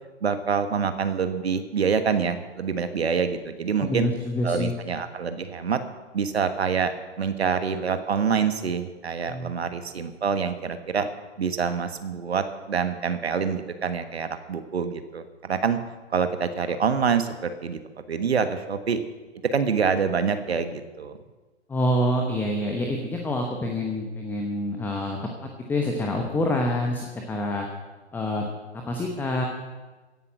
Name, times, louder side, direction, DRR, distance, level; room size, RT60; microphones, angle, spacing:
voice 1, 0.2-4.1 4.4-5.8 6.1-11.1 11.4-15.8 16.1-17.3 17.6-17.8 18.1-19.0 19.5-21.2, right 6 dB, 65° right, 9 dB, 1.4 m, -26 dB
voice 2, 3.8-4.7 9.3-9.5 21.7-25.2 25.7-27.7 28.1-28.5 28.9-29.5, left 1 dB, 5° left, 2 dB, 1.0 m, -26 dB
16.5 x 11.0 x 6.3 m, 1.3 s
figure-of-eight pair, 125°, 35 cm